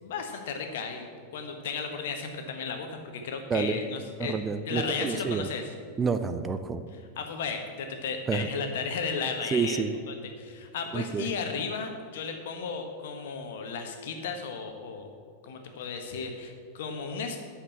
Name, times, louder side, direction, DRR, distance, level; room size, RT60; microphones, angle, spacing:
voice 1, 0.0-2.9 3.1-4.3 4.7-5.7 7.2-15.1 15.4-17.4, left 5 dB, 55° left, 5 dB, 1.4 m, -34 dB
voice 2, 4.3-5.5 6.0-6.8 8.3-8.5 9.5-10.0 10.9-11.3, right 5 dB, 20° right, 10 dB, 0.5 m, -28 dB
8.8 x 6.6 x 7.7 m, 2.1 s
figure-of-eight pair, 90°, 0 cm